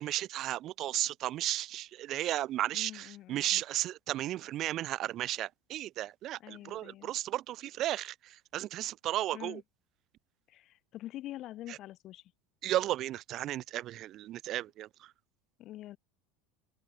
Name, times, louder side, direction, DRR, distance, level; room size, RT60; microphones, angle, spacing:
voice 1, 0.0-9.6 11.7-11.8 12.6-15.1, right 14 dB, 40° right, 0.7 m, -34 dB
voice 2, 2.7-3.6 6.4-7.1 9.3-9.6 10.5-12.3 15.6-16.0, left 14 dB, 40° left, 3.3 m, -45 dB
open air
supercardioid pair, 145°, 0 cm